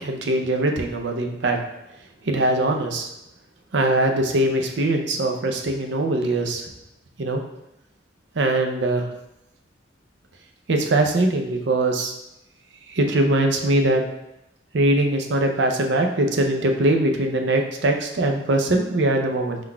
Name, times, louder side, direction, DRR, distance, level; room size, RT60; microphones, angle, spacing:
voice 1, 0.0-1.6 2.2-3.1 3.7-6.6 7.2-7.4 8.4-9.1 10.7-12.1 12.9-14.0 14.7-19.6, right 1 dB, 70° right, 3 dB, 0.6 m, -21 dB
3.8 x 2.5 x 4.4 m, 0.88 s
head